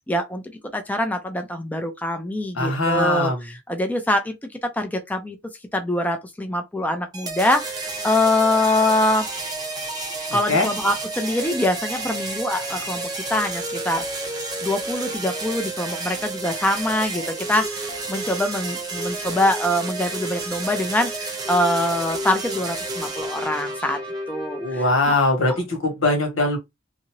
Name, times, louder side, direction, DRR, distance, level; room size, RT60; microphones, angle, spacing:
voice 1, 0.1-0.4 0.7-4.3 4.6-5.4 5.7-9.3 10.3-14.0 14.6-24.0 24.3-25.2, left 1 dB, 10° left, 0.4 m, -24 dB
voice 2, 2.5-3.4 10.3-10.7 24.6-26.6, left 2 dB, 85° left, 1.5 m, -21 dB
sound 1, 7.1-25.1, right 2 dB, 20° right, 0.8 m, -31 dB
2.7 x 2.7 x 2.9 m
head